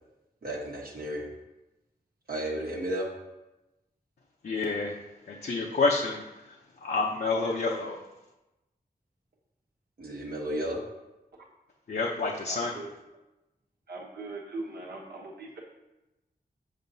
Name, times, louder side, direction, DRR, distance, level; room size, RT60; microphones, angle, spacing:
voice 1, 0.4-1.3 2.3-3.1 10.0-10.8, right 1 dB, 65° right, -4 dB, 1.0 m, -33 dB
voice 2, 4.4-4.9 5.3-6.2 6.8-8.0 11.9-12.8, left 3 dB, 70° left, -2 dB, 0.6 m, -28 dB
voice 3, 12.4-12.9 13.9-15.6, right 2 dB, 85° right, -2 dB, 1.2 m, -40 dB
7.3 x 5.8 x 2.7 m, 1.0 s
wide cardioid pair, 100°, 16 cm